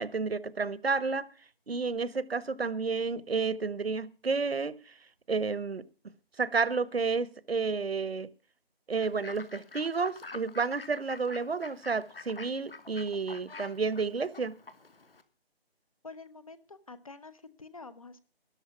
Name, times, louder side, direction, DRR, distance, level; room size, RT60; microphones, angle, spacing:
voice 1, 0.0-1.3 1.7-5.0 5.3-5.9 6.4-8.3 8.9-14.6, right 4 dB, 70° right, 1.3 m, -31 dB
Fowl / Bird, 9.0-15.2, left 4 dB, 65° left, 2.5 m, -48 dB
voice 2, 16.0-18.2, left 3 dB, 35° left, 1.1 m, -48 dB
13.0 x 12.5 x 5.8 m
figure-of-eight pair, 170°, 31 cm